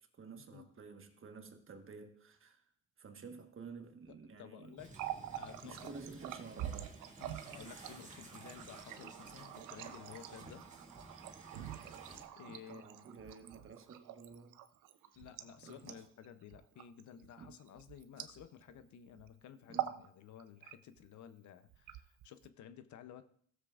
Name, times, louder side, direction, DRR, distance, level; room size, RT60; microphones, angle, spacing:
voice 1, 0.0-2.6 3.0-4.8 5.6-7.0 12.5-14.6 15.6-16.0 17.4-17.6 19.7-20.0, right 5 dB, 45° right, 1.3 m, -52 dB
voice 2, 4.1-4.9 5.3-5.9 7.2-10.6 11.7-12.9 15.2-23.3, left 9 dB, 70° left, 0.7 m, -54 dB
sound 1, 4.8-12.2, right 2 dB, 25° right, 2.1 m, -55 dB
Water tap faucet, 4.8-18.8 19.1-19.3 19.6-20.1 20.4-21.1 21.7-22.5, right 12 dB, 85° right, 0.7 m, -45 dB
16.5 x 7.4 x 2.4 m
cardioid pair, 90°, 30 cm